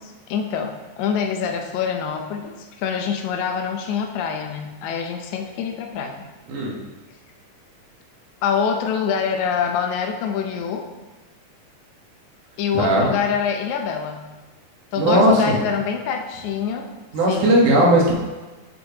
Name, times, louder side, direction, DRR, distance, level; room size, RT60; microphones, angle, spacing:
voice 1, 0.0-6.2 8.4-10.9 12.6-14.3 14.9-16.9 17.3-17.6, left 7 dB, 75° left, 4 dB, 2.0 m, -25 dB
voice 2, 12.7-13.1 15.0-15.6 17.1-18.1, right 1 dB, 80° right, -3 dB, 2.8 m, -17 dB
7.4 x 6.6 x 2.8 m, 1.2 s
omnidirectional pair, 3.6 m